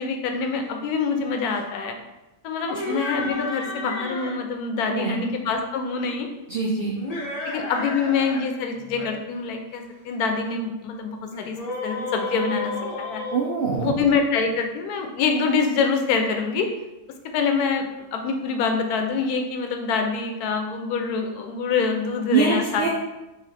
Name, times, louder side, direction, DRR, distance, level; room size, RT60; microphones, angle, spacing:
voice 1, 0.0-1.9 2.4-6.3 7.4-11.6 11.8-13.2 13.8-16.7 17.3-22.9, left 5 dB, 85° left, 4 dB, 1.1 m, -25 dB
sound 1, 2.6-4.4 6.9-8.4 8.8-9.1 11.3-14.2, left 2 dB, 50° left, 0.4 m, -32 dB
voice 2, 6.5-7.0 13.3-14.0 22.3-22.9, right 5 dB, 75° right, -3 dB, 0.5 m, -23 dB
3.1 x 2.8 x 4.0 m, 1.0 s
omnidirectional pair, 1.6 m